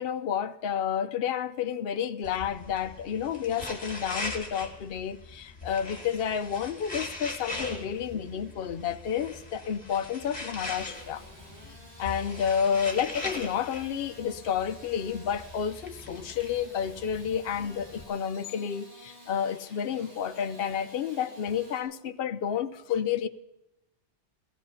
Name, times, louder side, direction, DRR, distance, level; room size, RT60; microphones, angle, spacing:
voice 1, 0.0-11.2 12.0-23.3, left 8 dB, 60° left, 0.9 m, -30 dB
sound 1, 2.2-18.0, left 2 dB, 35° left, 2.3 m, -41 dB
Engine starting / Sawing, 6.1-21.8, equal, 35° right, 6.5 m, -53 dB
16.5 x 14.5 x 5.6 m
omnidirectional pair, 1.2 m